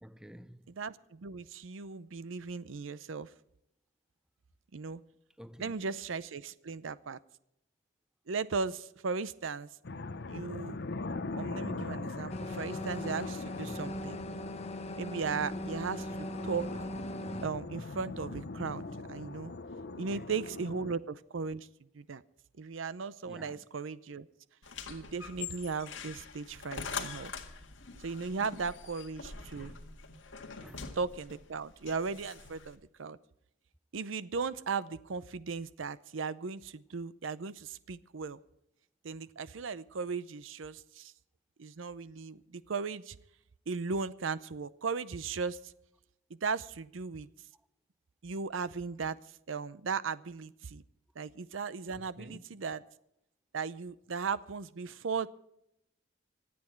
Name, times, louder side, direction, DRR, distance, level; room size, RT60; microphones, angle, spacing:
voice 1, 0.0-0.7 5.4-5.8 13.4-13.8 19.9-20.3 23.2-23.6 29.5-29.8 30.6-30.9 51.9-52.5, equal, 5° right, 0.5 m, -51 dB
voice 2, 0.8-3.3 4.7-5.0 5.6-7.2 8.3-9.7 10.3-10.8 11.4-14.2 15.0-16.9 17.4-19.5 20.0-21.7 21.9-22.2 22.6-24.3 24.9-27.3 28.0-29.7 30.9-33.2 33.9-38.4 39.0-41.1 41.6-43.2 43.7-45.7 46.4-47.3 48.2-49.2 49.5-50.8 51.2-52.8 53.5-55.3, right 5 dB, 85° right, 0.6 m, -37 dB
sound 1, 9.8-21.0, left 3 dB, 60° left, 0.8 m, -41 dB
sound 2, 12.3-17.5, left 1 dB, 35° left, 1.3 m, -39 dB
sound 3, 24.6-32.8, left 5 dB, 75° left, 1.9 m, -44 dB
25.0 x 8.7 x 4.6 m
head